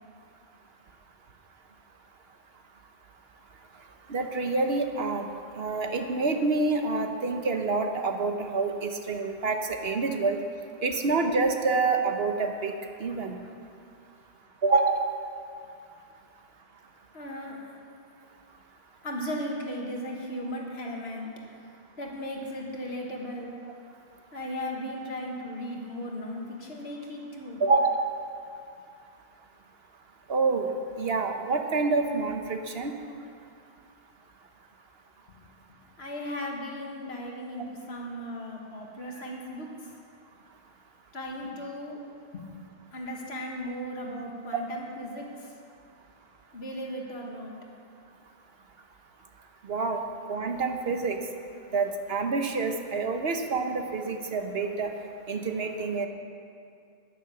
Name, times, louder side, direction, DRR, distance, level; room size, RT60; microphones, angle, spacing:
voice 1, 4.1-5.3 5.6-10.4 10.8-12.7 13.0-13.4 14.6-15.1 27.6-28.1 30.3-30.7 31.0-32.9 44.5-44.6 49.6-50.0 50.3-51.2 51.7-54.9 55.3-56.1, right 3 dB, 65° right, 5 dB, 1.2 m, -27 dB
voice 2, 17.1-17.8 19.0-21.3 21.6-23.5 24.3-27.6 35.4-39.9 41.1-42.0 42.3-42.4 42.9-45.6 46.5-47.5, equal, 65° left, 0 dB, 1.9 m, -37 dB
10.0 x 10.0 x 6.9 m, 2.4 s
omnidirectional pair, 1.1 m